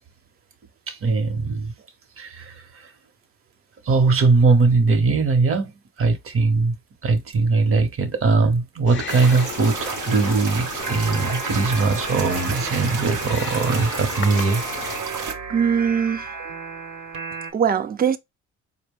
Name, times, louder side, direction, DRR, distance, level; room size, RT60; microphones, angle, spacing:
voice 1, 0.9-1.7 2.2-2.9 3.8-6.7 7.0-14.6, right 4 dB, 45° right, 1.0 m, -20 dB
Wild animals, 8.9-15.0, left 7 dB, 40° left, 0.5 m, -35 dB
sound 1, 9.1-15.3, right 5 dB, 90° right, 0.9 m, -31 dB
sound 2, 10.8-17.5, right 4 dB, 65° right, 1.1 m, -34 dB
voice 2, 15.5-16.3 17.5-18.2, right 7 dB, 30° right, 0.5 m, -21 dB
4.4 x 2.2 x 3.5 m
cardioid pair, 90°, 30 cm